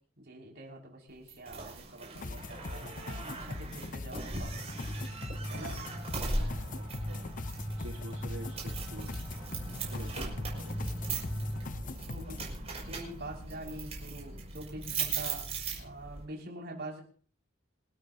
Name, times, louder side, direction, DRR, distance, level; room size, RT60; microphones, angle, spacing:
voice 1, 0.2-4.5 5.5-5.8 12.1-12.4 12.9-15.5 15.7-17.0, right 1 dB, 55° right, -1 dB, 5.9 m, -45 dB
sound 1, 1.3-16.2, right 3 dB, 30° right, 6.0 m, -39 dB
sound 2, 2.2-12.5, left 3 dB, 40° left, 0.7 m, -42 dB
sound 3, 4.4-11.8, equal, 5° right, 2.9 m, -41 dB
voice 2, 6.4-7.3 7.8-9.1 9.7-10.8, right 2 dB, 80° right, 1 dB, 1.7 m, -48 dB
27.0 x 13.0 x 2.8 m, 0.43 s
head